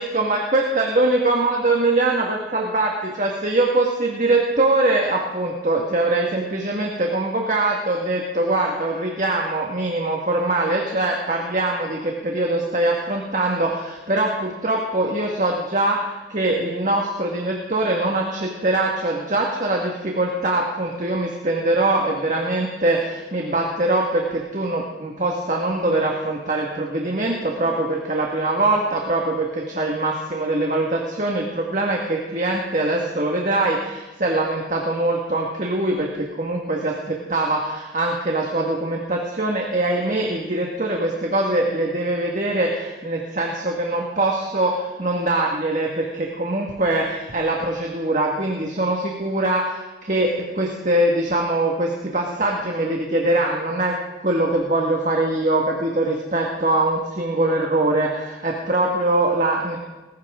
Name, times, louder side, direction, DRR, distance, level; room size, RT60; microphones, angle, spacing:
voice 1, 0.0-54.0 54.2-59.8, right 2 dB, 45° right, 0 dB, 1.7 m, -22 dB
20.0 x 16.0 x 3.7 m, 1.1 s
head